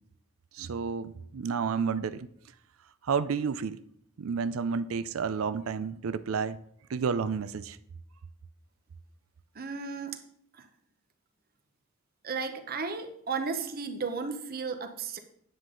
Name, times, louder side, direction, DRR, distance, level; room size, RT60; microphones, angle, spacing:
voice 1, 0.5-2.3 3.0-3.8 4.2-6.6 6.9-7.8, right 6 dB, 80° right, 0.4 m, -30 dB
voice 2, 9.5-10.2 10.6-10.7 12.2-15.2, right 5 dB, 45° right, 0.9 m, -34 dB
9.8 x 7.8 x 3.8 m
head